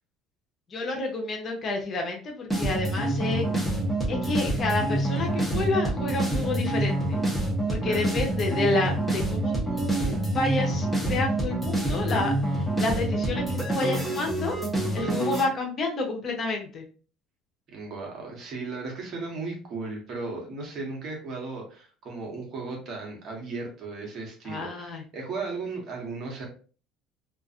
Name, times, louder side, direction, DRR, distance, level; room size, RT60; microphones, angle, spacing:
voice 1, 0.7-3.5 4.1-7.2 7.7-14.6 14.9-16.8 24.4-25.0, left 2 dB, 40° left, 2 dB, 0.8 m, -29 dB
sound 1, 2.5-15.4, right 1 dB, 5° left, 0.9 m, -27 dB
voice 2, 15.0-15.3 17.7-26.5, right 3 dB, 55° right, 0 dB, 1.1 m, -36 dB
2.4 x 2.4 x 2.4 m, 0.38 s
supercardioid pair, 95°, 0 cm